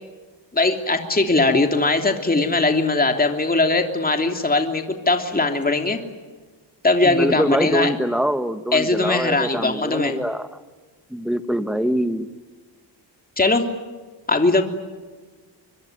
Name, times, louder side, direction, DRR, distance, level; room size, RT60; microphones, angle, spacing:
voice 1, 0.5-6.0 6.8-7.9 8.7-10.1 13.4-13.6 14.3-14.6, left 3 dB, 20° left, 4 dB, 3.1 m, -20 dB
voice 2, 7.0-10.6 11.1-12.3, equal, ahead, 10 dB, 1.9 m, -24 dB
24.5 x 23.5 x 9.6 m, 1.4 s
cardioid pair, 80°, 45 cm